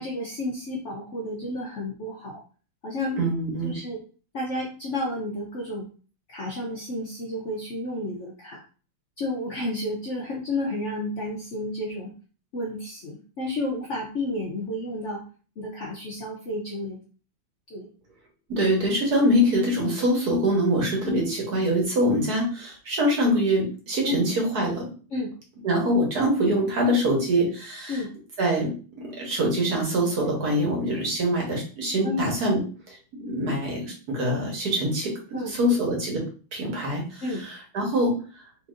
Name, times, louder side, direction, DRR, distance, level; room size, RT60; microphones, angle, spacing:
voice 1, 0.0-2.4 2.8-3.2 3.6-4.0 4.3-5.9 6.3-8.6 9.2-12.1 12.5-15.2 15.6-17.0 17.7-17.9 21.0-21.2 24.1-24.2 25.1-25.3 27.9-28.1 32.0-32.3 35.3-35.8 37.2-37.4, left 1 dB, 60° left, -1 dB, 0.8 m, -31 dB
voice 2, 3.1-3.7 18.5-24.9 25.6-28.0 28.4-28.7 29.0-32.6 32.9-36.2 36.5-38.1, equal, 60° right, -1 dB, 1.6 m, -24 dB
3.9 x 3.3 x 2.5 m, 0.39 s
omnidirectional pair, 2.0 m